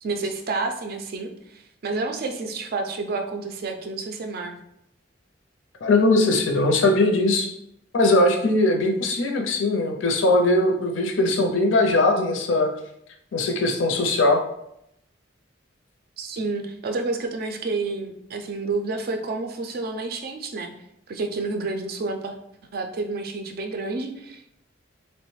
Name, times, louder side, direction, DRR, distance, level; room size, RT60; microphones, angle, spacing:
voice 1, 0.0-4.5 16.2-20.7 21.1-22.4 22.7-24.5, right 3 dB, 55° right, 5 dB, 0.4 m, -29 dB
voice 2, 5.8-7.5 7.9-12.7 13.3-14.4, left 2 dB, 85° left, 4 dB, 0.5 m, -20 dB
3.0 x 2.1 x 3.1 m, 0.77 s
head